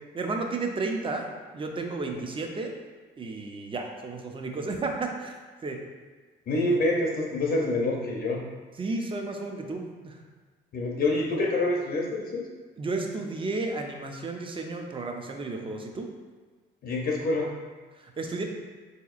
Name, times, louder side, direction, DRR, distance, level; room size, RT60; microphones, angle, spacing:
voice 1, 0.1-1.3 1.5-2.7 3.2-5.8 8.8-10.2 12.8-16.1 18.0-18.4, right 3 dB, 25° right, 3 dB, 0.4 m, -32 dB
voice 2, 6.5-8.4 10.7-12.4 16.8-17.5, left 2 dB, 50° left, -1 dB, 0.5 m, -26 dB
3.9 x 2.8 x 2.4 m, 1.4 s
cardioid pair, 90°, 20 cm